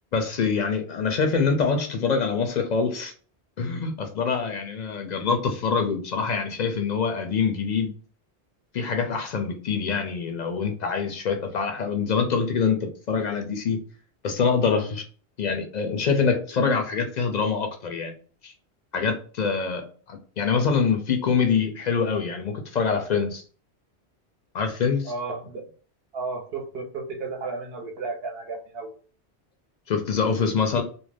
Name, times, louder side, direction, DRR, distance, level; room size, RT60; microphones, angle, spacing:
voice 1, 0.1-3.1 3.6-7.9 8.7-13.8 14.2-15.0 15.4-18.1 18.4-18.5 18.9-23.4 24.5-25.1 29.9-30.8, left 5 dB, 55° left, 5 dB, 0.5 m, -25 dB
voice 2, 25.0-25.7 26.1-28.9, right 3 dB, 70° right, 3 dB, 0.9 m, -33 dB
2.4 x 2.1 x 3.3 m, 0.41 s
omnidirectional pair, 1.1 m